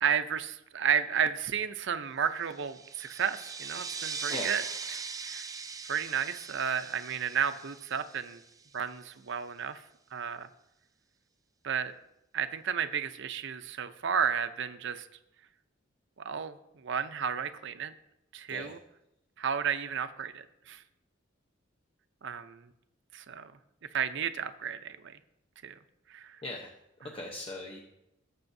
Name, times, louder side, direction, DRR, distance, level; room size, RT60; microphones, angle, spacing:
voice 1, 0.0-4.6 4.9-5.5 5.9-8.4 8.7-9.8 10.1-10.5 11.6-11.9 12.3-15.1 16.2-17.9 18.3-18.8 19.4-20.8 22.2-22.7 23.1-23.5 23.9-25.1 25.6-25.8 26.1-26.4, right 7 dB, 65° right, 10 dB, 0.6 m, -32 dB
sound 1, 2.5-8.7, right 5 dB, 20° right, 0.3 m, -40 dB
voice 2, 26.4-26.7 27.0-27.8, left 1 dB, 30° left, 1 dB, 0.8 m, -39 dB
18.0 x 7.0 x 2.7 m, 0.87 s
head